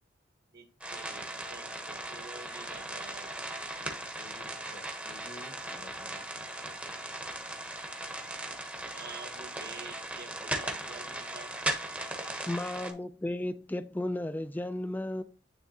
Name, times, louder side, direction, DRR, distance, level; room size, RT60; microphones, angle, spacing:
voice 1, 0.5-1.2 1.5-3.3 6.8-7.2 8.9-11.5, right 4 dB, 55° right, 1.5 m, -49 dB
sound 1, 0.8-12.9, right 1 dB, 10° right, 0.9 m, -38 dB
voice 2, 3.8-6.6, left 2 dB, 35° left, 1.0 m, -53 dB
voice 3, 12.5-15.2, left 1 dB, 10° left, 0.4 m, -34 dB
9.7 x 3.4 x 2.8 m
head